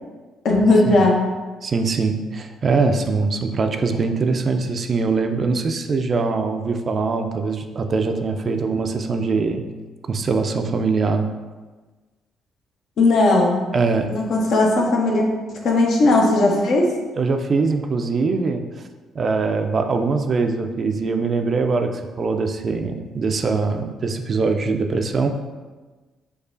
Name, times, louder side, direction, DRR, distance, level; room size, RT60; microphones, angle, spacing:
voice 1, 0.4-1.2 13.0-13.6 14.1-15.2 15.6-16.9, left 2 dB, 60° left, -1 dB, 0.6 m, -17 dB
voice 2, 1.6-9.6 10.1-11.3 13.7-14.1 17.2-18.6 19.1-25.3, right 4 dB, 45° right, 6 dB, 0.3 m, -22 dB
4.5 x 2.4 x 2.5 m, 1.3 s
hypercardioid pair, 50°, 0 cm